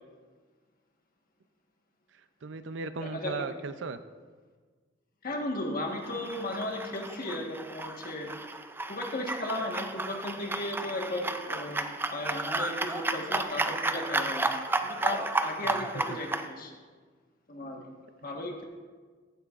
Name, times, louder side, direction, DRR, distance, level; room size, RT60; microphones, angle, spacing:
voice 1, 2.4-4.0 15.6-16.2, right 4 dB, 70° right, 11 dB, 0.5 m, -37 dB
voice 2, 3.0-3.4 5.2-8.3 8.9-16.7 17.5-18.6, left 1 dB, 50° left, 1 dB, 1.4 m, -36 dB
sound 1, 6.0-16.5, right 2 dB, 10° right, 0.3 m, -33 dB
15.0 x 9.1 x 2.5 m, 1.5 s
head